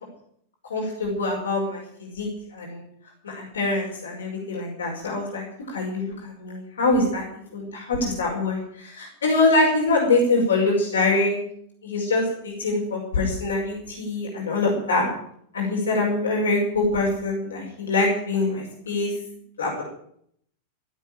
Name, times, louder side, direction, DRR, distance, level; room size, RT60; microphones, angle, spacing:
voice 1, 0.7-2.8 3.2-11.4 11.8-15.1 15.5-19.1 19.6-19.8, left 2 dB, 65° left, -1 dB, 5.6 m, -24 dB
16.5 x 8.3 x 9.0 m, 0.68 s
figure-of-eight pair, 90°, 0 cm